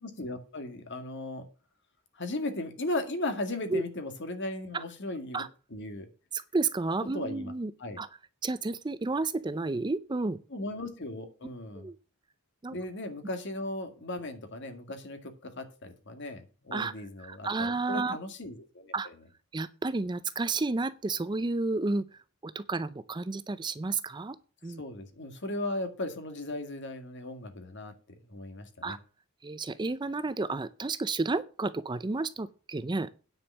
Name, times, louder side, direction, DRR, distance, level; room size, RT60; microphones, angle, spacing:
voice 1, 0.0-1.5 2.1-5.4 5.7-6.1 7.1-7.5 7.8-8.0 10.5-11.9 12.7-19.1 24.8-27.9 28.2-29.0, left 2 dB, 55° left, 2.0 m, -37 dB
voice 2, 6.3-7.7 8.0-8.1 8.4-10.4 11.8-11.9 12.6-12.8 16.7-16.9 17.3-18.2 18.9-19.1 19.5-22.0 22.4-24.4 24.6-24.8 28.8-29.0 29.4-33.1, right 3 dB, 20° right, 0.4 m, -31 dB
9.7 x 5.3 x 7.2 m
head